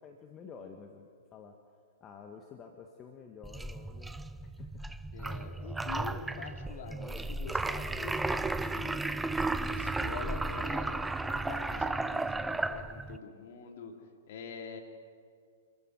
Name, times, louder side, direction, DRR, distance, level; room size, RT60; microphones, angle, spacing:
voice 1, 0.0-1.6 2.0-4.8, left 6 dB, 25° left, 4 dB, 1.5 m, -50 dB
sound 1, 3.4-13.2, right 2 dB, 5° right, 0.5 m, -34 dB
voice 2, 5.1-9.0 9.6-13.9 14.3-14.8, left 5 dB, 55° left, 3 dB, 3.0 m, -45 dB
26.5 x 13.5 x 7.8 m, 2.2 s
hypercardioid pair, 115°, 0 cm